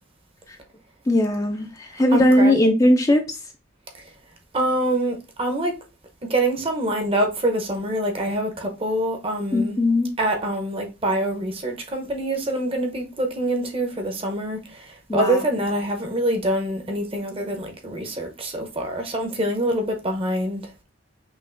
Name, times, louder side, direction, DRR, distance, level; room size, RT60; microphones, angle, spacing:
voice 1, 1.1-3.2 9.5-10.1 15.1-15.4, left 1 dB, 15° left, 0.4 m, -19 dB
voice 2, 2.1-2.6 4.5-5.7 6.2-9.8 10.2-20.6, right 1 dB, 30° right, 0.7 m, -25 dB
5.7 x 2.5 x 2.5 m
head